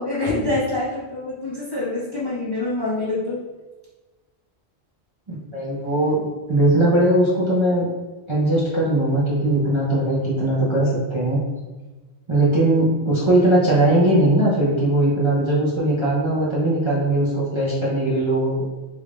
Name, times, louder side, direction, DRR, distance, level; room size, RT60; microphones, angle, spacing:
voice 1, 0.0-3.4, left 2 dB, 30° left, -7 dB, 0.6 m, -25 dB
voice 2, 5.3-7.9 8.3-11.4 12.3-18.7, right 1 dB, 35° right, -7 dB, 0.6 m, -19 dB
3.4 x 3.2 x 2.4 m, 1.2 s
omnidirectional pair, 1.1 m